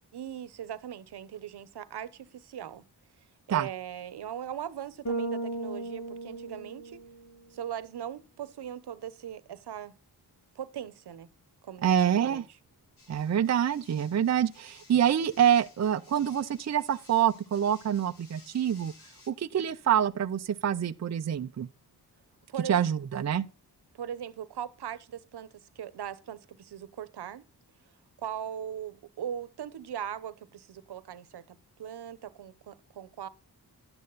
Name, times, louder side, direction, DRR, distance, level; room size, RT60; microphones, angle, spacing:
voice 1, 0.1-2.8 3.5-7.0 7.5-9.9 10.5-11.3 11.6-12.6 22.5-22.8 23.9-27.4 28.2-33.3, right 9 dB, 80° right, 1.0 m, -40 dB
Bass guitar, 5.0-7.4, right 2 dB, 45° left, 3.0 m, -36 dB
voice 2, 11.8-12.4 13.1-18.9 19.3-21.7 22.7-23.5, right 9 dB, 45° right, 0.6 m, -26 dB
sound 1, 13.0-19.3, left 3 dB, 85° left, 7.9 m, -57 dB
11.5 x 8.6 x 4.0 m
wide cardioid pair, 150°, 39 cm